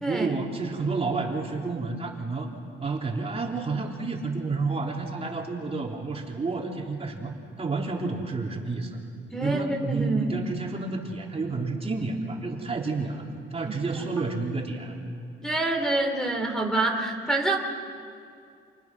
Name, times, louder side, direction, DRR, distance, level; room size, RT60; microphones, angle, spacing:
voice 1, 0.1-2.5 2.8-7.3 7.6-8.9 9.4-13.2 13.5-15.0, right 3 dB, 30° right, -1 dB, 3.5 m, -30 dB
voice 2, 9.3-10.5 13.9-14.0 15.4-17.6, right 2 dB, 5° left, 3 dB, 3.5 m, -26 dB
28.5 x 27.0 x 6.2 m, 2.4 s
cardioid pair, 90°, 20 cm